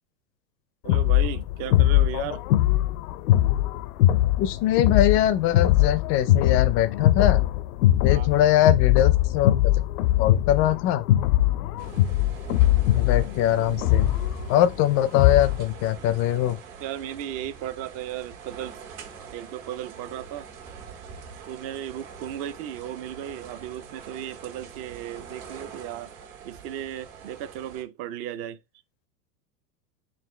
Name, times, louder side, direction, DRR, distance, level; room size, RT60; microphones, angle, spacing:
voice 1, 0.8-2.4 8.1-8.3 16.8-18.8 19.3-20.5 21.5-26.1 26.4-28.6, right 11 dB, 35° right, 0.4 m, -35 dB
sound 1, 0.9-15.7, left 14 dB, 80° left, 0.5 m, -21 dB
voice 2, 4.4-7.4 8.0-9.6 10.2-11.0 12.9-14.1 14.5-16.6, left 12 dB, 30° left, 0.4 m, -22 dB
sound 2, 11.8-27.8, right 6 dB, 60° right, 1.7 m, -43 dB
3.9 x 2.4 x 4.2 m
hypercardioid pair, 120°, 46 cm